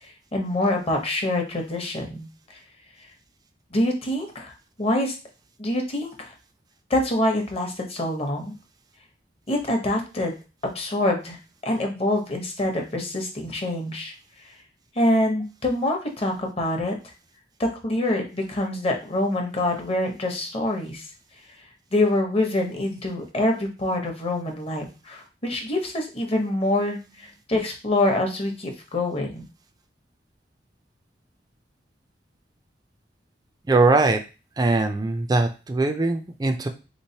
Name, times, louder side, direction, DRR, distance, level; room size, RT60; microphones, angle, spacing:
voice 1, 0.0-2.3 3.7-4.5 4.8-5.2 5.6-6.3 6.9-8.5 9.5-10.3 10.6-11.4 11.6-14.1 14.5-14.6 14.9-16.9 17.6-21.0 21.9-29.4, left 1 dB, 35° left, 2 dB, 0.8 m, -25 dB
voice 2, 33.7-34.2 34.6-36.7, right 3 dB, 20° right, 5 dB, 0.3 m, -21 dB
3.6 x 3.0 x 2.7 m, 0.31 s
head